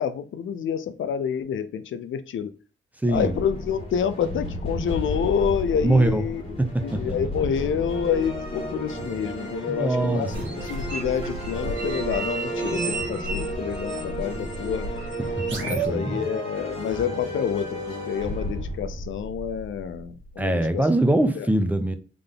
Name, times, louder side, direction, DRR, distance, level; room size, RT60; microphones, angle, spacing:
voice 1, 0.0-2.5 3.1-6.4 6.8-14.9 15.5-17.8 18.1-20.8 21.4-21.5, left 8 dB, 70° left, 0.6 m, -28 dB
voice 2, 3.0-3.4 5.8-6.2 6.6-7.0 9.7-10.5 15.2-16.3 20.4-21.9, right 1 dB, 5° right, 0.7 m, -23 dB
sound 1, 3.1-20.7, equal, 25° left, 2.0 m, -33 dB
sound 2, 10.3-15.9, right 3 dB, 65° right, 1.8 m, -33 dB
3.7 x 3.3 x 3.8 m
cardioid pair, 95°, 21 cm